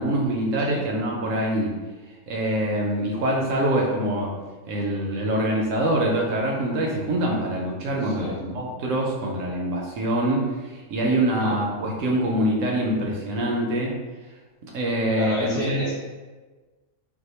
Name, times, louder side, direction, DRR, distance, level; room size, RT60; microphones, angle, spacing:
voice 1, 0.0-1.7 2.3-4.3 4.7-13.9 14.6-15.8, right 1 dB, 70° right, -1 dB, 0.8 m, -24 dB
voice 2, 8.0-8.4 11.4-11.6 15.2-15.9, left 2 dB, 60° left, -8 dB, 0.6 m, -29 dB
2.7 x 2.2 x 4.1 m, 1.3 s
omnidirectional pair, 1.6 m